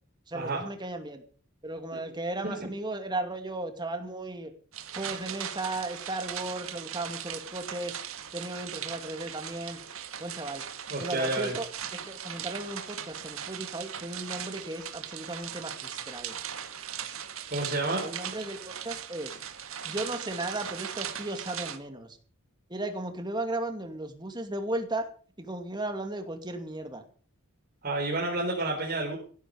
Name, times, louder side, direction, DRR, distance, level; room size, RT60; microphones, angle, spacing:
voice 1, 0.3-1.2 1.6-4.5 4.9-8.0 8.3-9.8 10.2-10.6 11.0-16.4 18.0-19.4 19.8-22.2 22.7-25.1 25.4-27.0, right 2 dB, 20° right, 6 dB, 2.5 m, -35 dB
sound 1, 4.7-21.8, right 9 dB, 65° right, 1.8 m, -39 dB
voice 2, 10.9-11.6 17.5-18.1 27.8-29.2, right 2 dB, 40° right, -2 dB, 4.2 m, -30 dB
16.0 x 13.0 x 5.2 m, 0.43 s
head